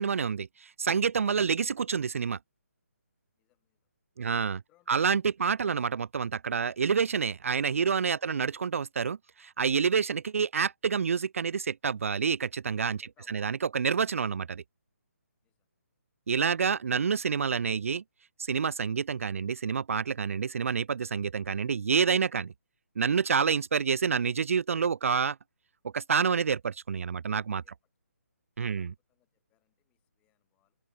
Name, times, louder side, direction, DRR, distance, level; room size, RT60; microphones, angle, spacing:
voice 1, 0.0-2.4 4.2-4.6 4.9-13.0 13.3-14.6 16.3-18.0 18.4-22.5 23.0-25.4 25.9-27.6 28.6-28.9, right 6 dB, 60° right, 0.6 m, -28 dB
voice 2, 3.4-3.8 4.2-5.7 8.2-8.5 13.0-13.5 15.4-15.7 27.6-27.7 28.6-30.8, left 17 dB, 15° left, 5.7 m, -69 dB
hypercardioid pair, 165°, 8 cm